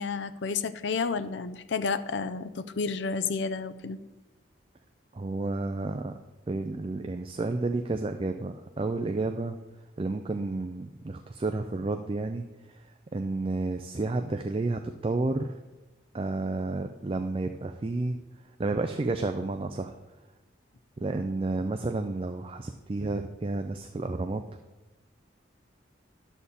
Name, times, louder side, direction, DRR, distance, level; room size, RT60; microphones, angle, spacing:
voice 1, 0.0-4.0, left 5 dB, 70° left, 11 dB, 0.5 m, -31 dB
voice 2, 5.1-6.1 6.5-9.6 10.0-15.6 16.1-18.2 18.6-19.9 21.0-24.4, right 2 dB, 30° right, 6 dB, 0.4 m, -31 dB
11.5 x 4.2 x 7.0 m, 1.1 s
head